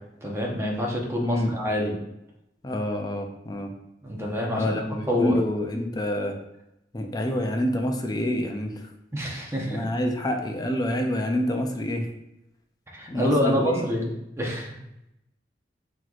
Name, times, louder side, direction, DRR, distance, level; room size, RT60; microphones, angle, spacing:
voice 1, 0.2-1.9 4.0-4.7 5.1-5.4 9.1-10.1 12.9-14.1 14.4-14.7, equal, 15° right, -2 dB, 0.9 m, -26 dB
voice 2, 1.2-1.5 2.6-3.7 4.5-6.4 6.9-8.9 9.7-12.1 13.1-13.7, left 1 dB, 20° left, 4 dB, 0.4 m, -27 dB
5.8 x 3.0 x 2.4 m, 0.87 s
head